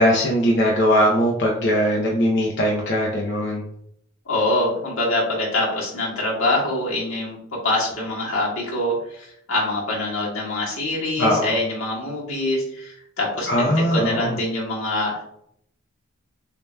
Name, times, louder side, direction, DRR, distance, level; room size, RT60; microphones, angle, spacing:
voice 1, 0.0-3.6 11.2-11.5 13.5-14.4, equal, 55° left, -2 dB, 0.7 m, -20 dB
voice 2, 4.3-15.2, left 1 dB, 80° left, -4 dB, 1.7 m, -25 dB
6.6 x 2.8 x 2.3 m, 0.70 s
head